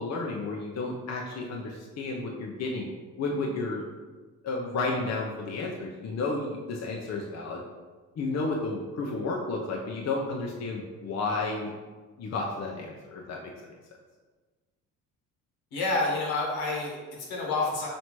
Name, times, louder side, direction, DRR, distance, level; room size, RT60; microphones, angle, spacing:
voice 1, 0.0-2.9 3.2-3.9 4.4-7.6 8.2-11.7 12.2-13.5, left 3 dB, 40° left, -1 dB, 0.7 m, -32 dB
voice 2, 15.7-17.9, left 3 dB, 75° left, -3 dB, 1.4 m, -29 dB
4.3 x 3.1 x 3.0 m, 1.3 s
hypercardioid pair, 60°, 39 cm